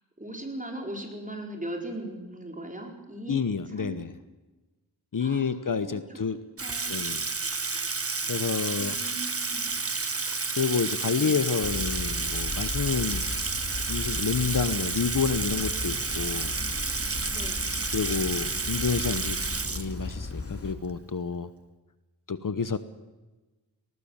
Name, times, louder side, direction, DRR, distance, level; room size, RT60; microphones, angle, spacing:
voice 1, 0.2-4.0 5.2-6.2 6.6-7.0 8.8-9.6 11.2-11.4 17.3-17.6, right 1 dB, 20° right, 2 dB, 4.6 m, -39 dB
voice 2, 3.3-4.1 5.1-6.4 6.9-7.3 8.3-9.0 10.6-13.2 13.9-16.5 17.9-19.4 19.7-21.5 22.3-22.8, left 5 dB, 55° left, 12 dB, 1.0 m, -29 dB
Water tap faucet / Sink (filling or washing), 6.6-20.3, right 4 dB, 35° right, 1.3 m, -31 dB
sound 1, 11.6-20.8, left 3 dB, 35° left, 2.4 m, -36 dB
19.5 x 19.0 x 7.3 m, 1.1 s
wide cardioid pair, 75°, 39 cm